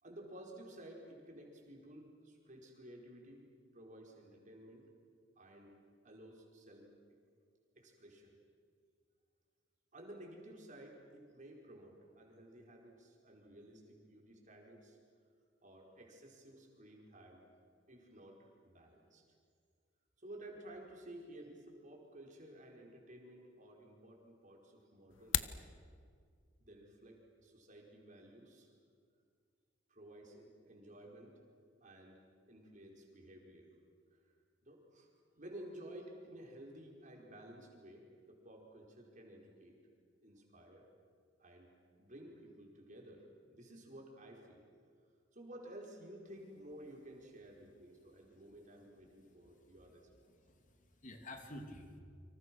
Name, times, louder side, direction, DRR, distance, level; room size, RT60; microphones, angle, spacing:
voice 1, 0.0-3.4 3.7-4.8 5.4-5.7 6.0-6.9 7.7-8.4 9.9-15.0 15.6-17.4 17.9-18.4 18.6-19.2 20.2-25.6 26.6-28.7 29.9-31.3 31.8-32.2 32.5-33.7 34.6-35.1 35.4-39.8 40.2-40.9 41.4-41.7 42.0-43.2 43.5-44.6 45.3-50.1, right 1 dB, 40° right, 0 dB, 5.0 m, -54 dB
sound 1, 25.1-25.6, left 11 dB, 85° left, 0.9 m, -35 dB
voice 2, 49.0-50.0 50.2-52.0, left 1 dB, 45° left, 4 dB, 3.1 m, -53 dB
29.5 x 26.0 x 6.3 m, 2.1 s
head